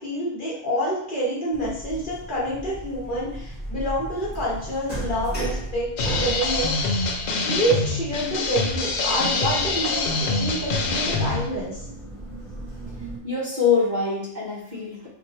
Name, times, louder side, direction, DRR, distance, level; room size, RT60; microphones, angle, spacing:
voice 1, 0.0-11.9, right 1 dB, 45° left, -6 dB, 1.1 m, -28 dB
sound 1, 1.5-13.2, right 1 dB, 10° left, 1.2 m, -35 dB
sound 2, 6.0-11.5, left 3 dB, 65° left, 0.4 m, -25 dB
voice 2, 13.2-15.1, left 5 dB, 45° right, -6 dB, 0.8 m, -24 dB
2.7 x 2.4 x 4.0 m, 0.72 s
omnidirectional pair, 1.3 m